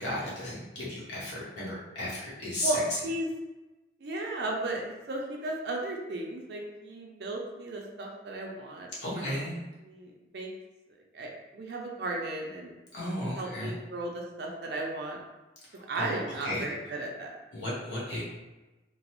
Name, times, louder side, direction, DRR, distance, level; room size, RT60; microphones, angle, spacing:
voice 1, 0.0-3.0 8.9-9.6 12.9-13.8 15.7-16.7 17.5-18.2, left 1 dB, 85° left, -7 dB, 1.0 m, -34 dB
voice 2, 2.6-3.3 4.0-8.9 9.1-9.5 9.9-10.5 11.1-15.2 15.9-17.3, right 2 dB, 60° right, 0 dB, 0.4 m, -35 dB
2.9 x 2.0 x 2.9 m, 1.1 s
head